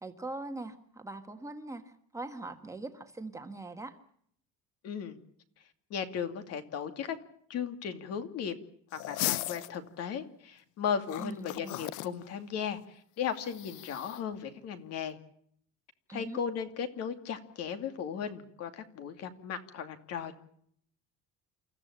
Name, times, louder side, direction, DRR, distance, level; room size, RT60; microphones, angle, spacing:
voice 1, 0.0-4.0 11.2-11.9 16.1-16.4, right 2 dB, 10° right, 6 dB, 1.5 m, -42 dB
voice 2, 4.8-5.2 5.9-7.2 7.5-8.6 8.9-15.2 16.1-20.4, left 7 dB, 55° left, 8 dB, 2.6 m, -36 dB
sound 1, 8.9-9.7 11.0-12.1 13.5-14.2, left 17 dB, 80° left, 0.8 m, -36 dB
28.5 x 14.5 x 8.7 m, 0.66 s
cardioid pair, 175°, 30 cm